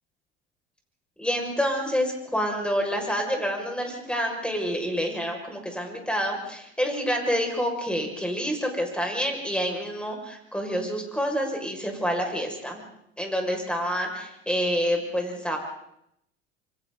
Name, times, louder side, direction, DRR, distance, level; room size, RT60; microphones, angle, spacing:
voice 1, 1.2-12.8 13.2-15.6, equal, 5° left, 1 dB, 6.4 m, -28 dB
27.5 x 24.0 x 4.1 m, 0.76 s
figure-of-eight pair, 65°, 33 cm